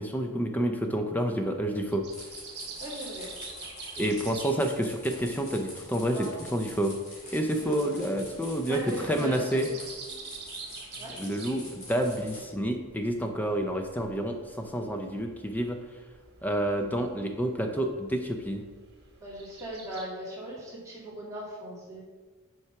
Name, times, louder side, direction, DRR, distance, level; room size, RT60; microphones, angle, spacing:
voice 1, 0.0-2.0 4.0-6.9 7.3-9.7 11.2-15.8 16.4-18.6, right 1 dB, 10° left, 4 dB, 0.5 m, -29 dB
sound 1, 1.6-20.0, right 4 dB, 50° right, 1.6 m, -48 dB
sound 2, 2.1-12.4, left 1 dB, 30° left, 1.9 m, -45 dB
voice 2, 2.8-3.3 6.0-6.4 7.4-8.0 8.6-9.7 11.0-11.1 19.2-22.0, equal, 15° right, -7 dB, 2.2 m, -39 dB
5.7 x 4.6 x 5.8 m, 1.3 s
head